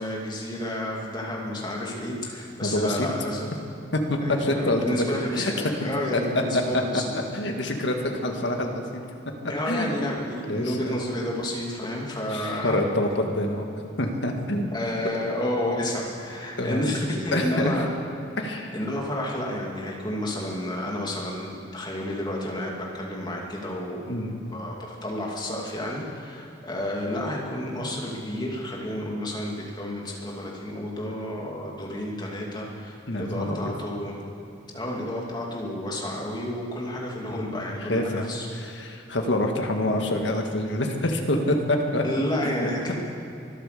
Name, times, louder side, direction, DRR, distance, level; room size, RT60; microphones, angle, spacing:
voice 1, 0.0-3.5 4.2-7.1 9.5-12.8 14.7-17.9 18.7-24.2 24.5-34.2 34.7-38.5 42.0-42.9, left 1 dB, 25° left, -2 dB, 2.6 m, -31 dB
voice 2, 2.6-3.1 3.9-5.5 5.8-6.2 6.5-6.8 7.3-9.0 9.7-10.1 10.5-11.1 12.3-13.6 14.0-14.7 16.6-16.8 17.3-17.8 18.4-18.8 24.1-24.4 33.1-33.7 37.3-42.0 42.4-42.7, left 1 dB, 70° left, 3 dB, 1.8 m, -26 dB
24.0 x 8.5 x 6.8 m, 2.9 s
head